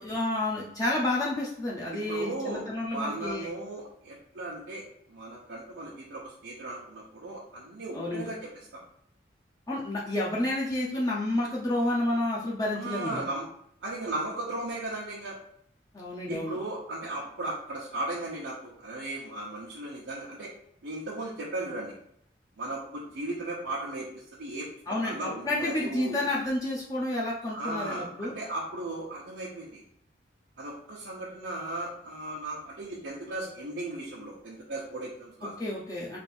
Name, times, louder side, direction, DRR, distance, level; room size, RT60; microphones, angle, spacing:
voice 1, 0.0-3.5 7.9-8.3 9.7-13.2 15.9-16.6 24.9-28.3 35.6-36.2, left 1 dB, 20° left, -5 dB, 0.6 m, -30 dB
voice 2, 2.1-2.6 2.9-4.8 5.1-8.8 12.7-13.5 13.8-15.4 16.3-20.5 20.8-21.9 22.6-24.7 25.0-26.2 27.5-29.8 30.6-35.7, right 2 dB, 90° right, -7 dB, 0.8 m, -36 dB
3.3 x 2.6 x 4.2 m, 0.69 s
head